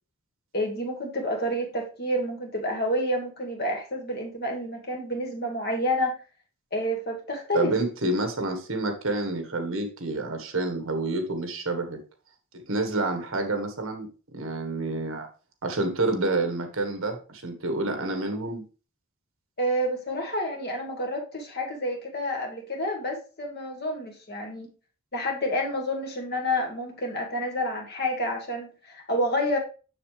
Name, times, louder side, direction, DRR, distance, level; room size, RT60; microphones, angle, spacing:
voice 1, 0.5-6.1 6.7-7.7 19.6-24.7 25.1-29.6, equal, 45° left, 1 dB, 1.6 m, -29 dB
voice 2, 7.5-12.0 12.7-14.1 14.3-15.3 15.6-18.6, right 2 dB, 70° right, 6 dB, 1.4 m, -28 dB
6.9 x 6.6 x 3.3 m, 0.36 s
head